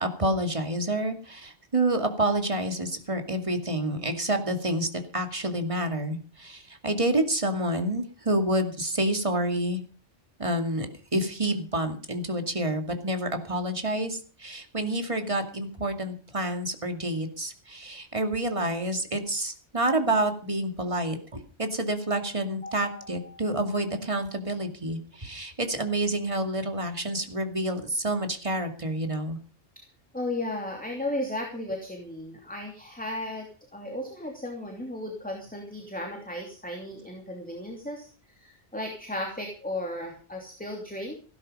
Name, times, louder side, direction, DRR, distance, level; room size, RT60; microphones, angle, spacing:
voice 1, 0.0-9.8 10.4-29.4, right 1 dB, 25° right, 6 dB, 2.4 m, -28 dB
voice 2, 22.6-23.5 30.1-38.1 38.4-41.1, left 1 dB, 5° left, 1 dB, 2.8 m, -35 dB
16.0 x 12.5 x 5.4 m, 0.39 s
omnidirectional pair, 1.2 m